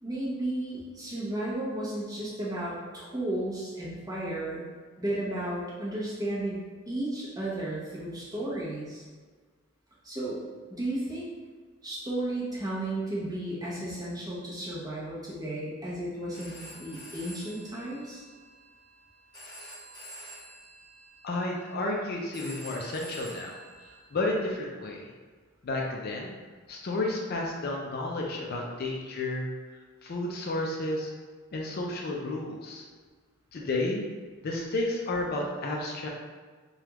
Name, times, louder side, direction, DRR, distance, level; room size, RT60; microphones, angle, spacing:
voice 1, 0.0-4.6 5.0-9.1 10.0-10.4 10.7-11.3 11.8-18.2, right 1 dB, 20° right, -7 dB, 0.8 m, -34 dB
Telephone, 16.1-24.0, right 1 dB, 20° left, 1.2 m, -48 dB
voice 2, 21.2-23.6 23.8-25.1 25.6-26.4 26.7-29.5 30.0-31.1 31.5-32.8 33.5-34.0 34.4-36.1, left 2 dB, 50° left, -1 dB, 0.4 m, -31 dB
3.3 x 2.3 x 2.9 m, 1.5 s
head